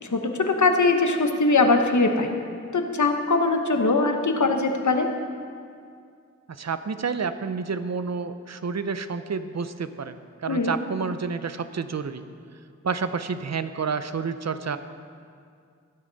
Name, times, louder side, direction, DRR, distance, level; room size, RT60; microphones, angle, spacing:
voice 1, 0.0-2.3 2.7-5.1 10.5-10.7, left 3 dB, 80° left, 5 dB, 1.0 m, -21 dB
voice 2, 6.6-12.2 12.8-14.8, right 5 dB, 65° right, 11 dB, 0.6 m, -29 dB
14.5 x 10.0 x 4.1 m, 2.2 s
wide cardioid pair, 45°, 29 cm